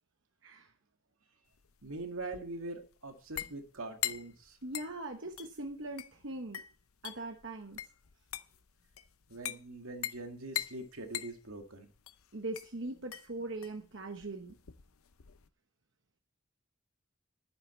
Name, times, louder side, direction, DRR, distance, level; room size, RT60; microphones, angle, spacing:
sound 1, 1.5-15.5, left 12 dB, 85° left, 0.7 m, -43 dB
voice 1, 1.8-4.6 9.3-11.9, right 2 dB, 85° right, 5 dB, 2.1 m, -43 dB
voice 2, 4.6-6.6 7.0-7.8 12.3-14.5, right 2 dB, 60° right, 5 dB, 1.1 m, -41 dB
11.5 x 9.7 x 4.4 m, 0.36 s
head